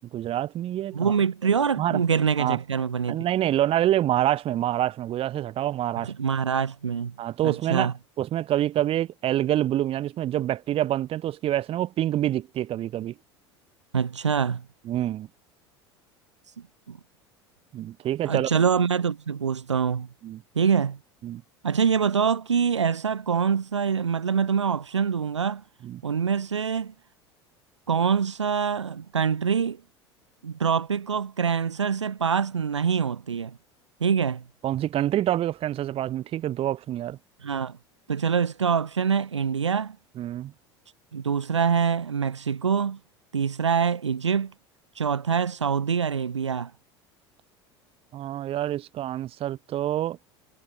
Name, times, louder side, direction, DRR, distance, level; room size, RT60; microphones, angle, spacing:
voice 1, 0.1-1.0 1.8-2.0 2.4-2.6 3.1-6.1 7.2-7.9 8.2-13.1 14.9-15.3 17.7-18.5 20.2-20.4 21.2-21.4 25.8-26.0 34.6-37.2 40.2-40.5 48.1-50.2, right 12 dB, 40° right, 1.5 m, -26 dB
voice 2, 0.9-3.3 6.0-7.1 7.4-7.9 13.9-14.7 16.6-17.0 18.3-20.1 20.5-21.0 21.6-25.6 26.0-26.9 27.9-29.8 30.4-33.6 34.0-34.4 37.4-37.8 38.1-40.0 41.1-43.0 43.3-44.5 44.9-46.7, right 6 dB, 85° right, 1.1 m, -25 dB
figure-of-eight pair, 75°, 15 cm